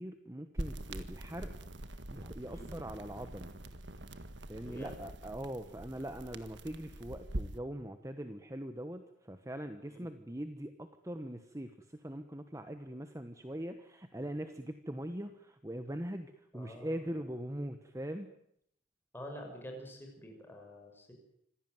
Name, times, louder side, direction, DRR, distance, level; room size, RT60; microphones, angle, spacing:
voice 1, 0.0-1.5 2.1-3.5 4.5-18.3, right 1 dB, 15° right, 8 dB, 1.1 m, -42 dB
sound 1, 0.6-7.6, right 1 dB, 60° right, 1.6 m, -44 dB
voice 2, 4.6-5.0 9.9-10.1 14.1-14.3 16.5-17.2 19.1-21.1, equal, 10° left, 2 dB, 6.4 m, -48 dB
26.0 x 16.5 x 9.4 m, 0.74 s
head